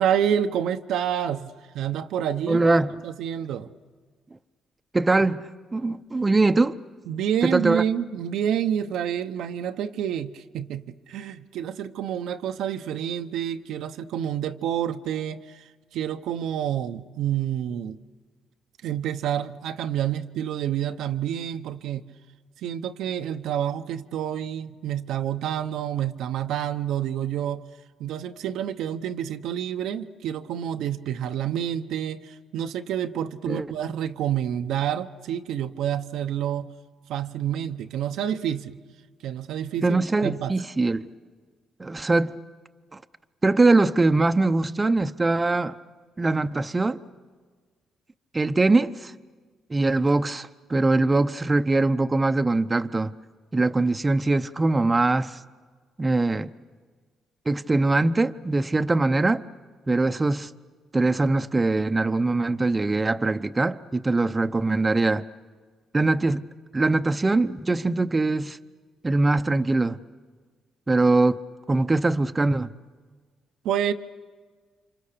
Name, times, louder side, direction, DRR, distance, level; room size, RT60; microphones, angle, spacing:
voice 1, 0.0-1.5 1.7-2.6 3.0-3.7 7.1-15.6 15.9-18.0 18.8-22.0 22.6-27.6 28.0-36.7 37.1-38.8 39.2-39.9 40.2-40.5 73.6-73.9, right 10 dB, 80° right, 0.8 m, -28 dB
voice 2, 2.5-3.0 4.9-6.8 7.4-7.8 33.5-33.8 39.8-41.1 41.8-42.4 42.9-43.0 43.4-45.7 46.2-47.0 48.3-49.1 49.7-53.1 53.5-55.4 56.0-56.5 57.5-59.4 59.9-60.5 60.9-65.2 65.9-66.4 66.7-68.6 69.0-70.0 70.9-71.4 71.7-72.7, right 2 dB, 20° right, 0.7 m, -22 dB
29.5 x 26.5 x 6.8 m
cardioid pair, 90°, 0 cm